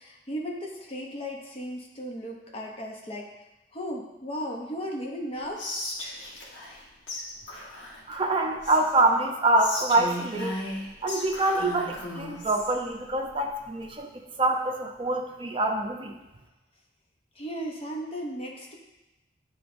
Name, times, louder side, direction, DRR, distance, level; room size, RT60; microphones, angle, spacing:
voice 1, 0.0-3.3 3.7-5.8 6.7-6.9 17.3-18.8, equal, 30° left, 0 dB, 0.7 m, -36 dB
Whispering, 5.6-6.8 7.1-7.2 7.5-9.0 9.6-12.7, left 1 dB, 80° left, 1.4 m, -36 dB
voice 2, 8.1-10.6 11.0-14.1 14.4-16.1, right 2 dB, 30° right, 2 dB, 0.6 m, -25 dB
9.5 x 3.8 x 2.6 m, 1.0 s
head